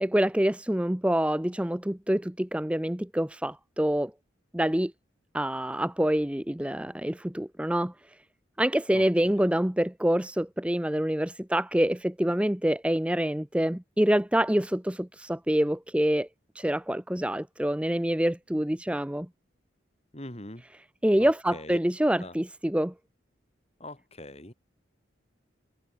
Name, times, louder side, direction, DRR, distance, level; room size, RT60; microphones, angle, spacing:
voice 1, 0.0-4.1 4.5-4.9 5.3-7.9 8.6-16.3 16.5-19.3 21.0-22.9, right 1 dB, 5° right, 0.6 m, -26 dB
voice 2, 8.9-9.6 20.1-20.6 21.2-21.8 22.2-22.4 23.8-24.5, left 1 dB, 35° left, 4.5 m, -43 dB
head